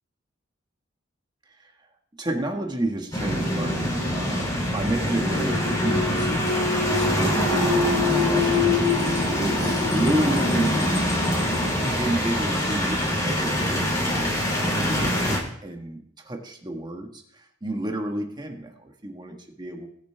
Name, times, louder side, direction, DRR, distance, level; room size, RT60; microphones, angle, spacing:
voice 1, 2.2-6.4 6.9-8.7 9.4-11.3 11.8-19.9, right 1 dB, 20° right, 3 dB, 1.4 m, -31 dB
sound 1, 3.1-15.4, left 1 dB, 20° left, 2.8 m, -23 dB
20.5 x 7.2 x 3.4 m, 0.69 s
head